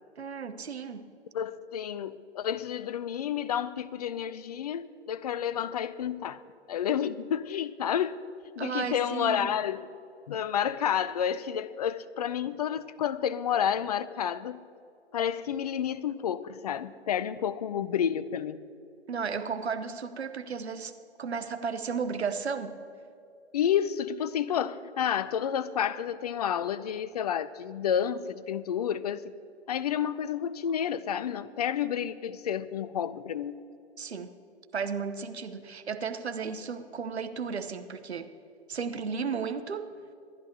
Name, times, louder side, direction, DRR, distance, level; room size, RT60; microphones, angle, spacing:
voice 1, 0.2-1.1 8.6-9.6 19.1-20.9 21.2-22.8 34.0-34.3 34.7-38.3 38.7-39.9, right 5 dB, 70° right, 10 dB, 1.0 m, -34 dB
voice 2, 1.3-6.4 6.7-8.2 8.6-9.9 10.3-14.6 15.1-18.6 23.5-29.3 29.7-33.6, left 9 dB, 35° left, 16 dB, 0.4 m, -30 dB
26.0 x 11.0 x 2.9 m, 2.5 s
figure-of-eight pair, 125°, 34 cm